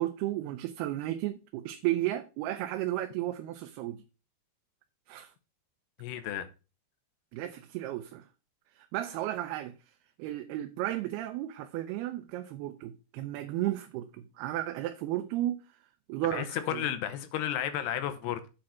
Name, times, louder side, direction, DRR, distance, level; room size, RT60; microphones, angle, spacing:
voice 1, 0.0-4.0 5.1-5.3 7.3-8.3 8.8-9.7 10.2-15.6 16.1-16.8, right 14 dB, 80° right, 2.7 m, -33 dB
voice 2, 6.0-6.5 16.3-18.5, left 10 dB, 85° left, 3.1 m, -33 dB
8.5 x 5.1 x 5.8 m
omnidirectional pair, 4.7 m